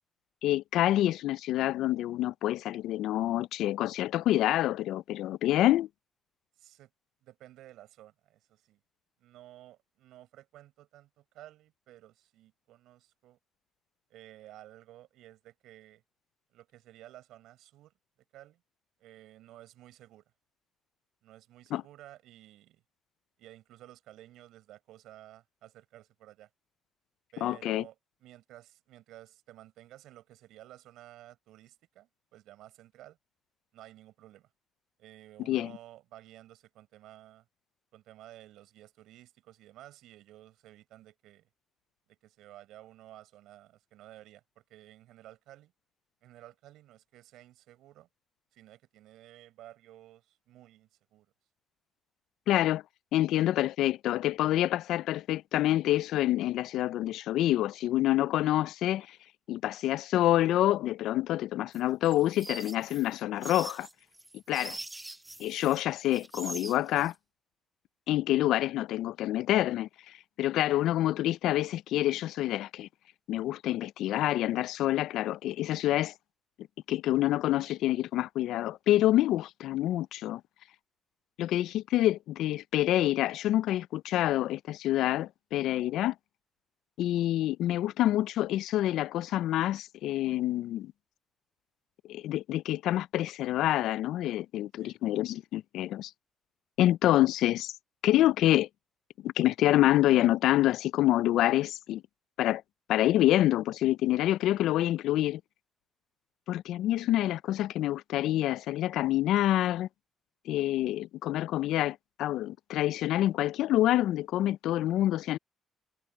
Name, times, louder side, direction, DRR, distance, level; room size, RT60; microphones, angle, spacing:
voice 1, 0.4-5.9 21.7-21.8 27.4-27.8 35.5-35.7 52.5-52.8 53.1-59.2 59.5-63.9 64.5-64.7 65.4-67.1 68.1-69.9 70.4-72.9 73.3-76.1 76.9-80.4 81.4-86.1 87.0-90.9 92.1-96.1 96.8-97.7 98.0-98.7 99.2-102.0 102.4-102.6 102.9-105.4 106.5-109.9 110.5-115.4, left 14 dB, 80° left, 0.3 m, -27 dB
voice 2, 6.6-6.9 7.2-8.8 9.2-13.4 14.1-16.0 16.5-17.9 18.3-18.6 19.0-20.3 21.2-22.8 23.4-26.5 27.3-33.2 33.7-34.5 35.0-37.5 37.9-41.5 42.1-45.7 46.2-48.1 48.5-51.3 53.3-53.5 64.6-64.8 94.8-95.0, right 14 dB, 90° right, 5.1 m, -53 dB
sound 1, 61.7-65.8 66.1-67.1, right 1 dB, 10° right, 0.7 m, -43 dB
cardioid pair, 150°, 0 cm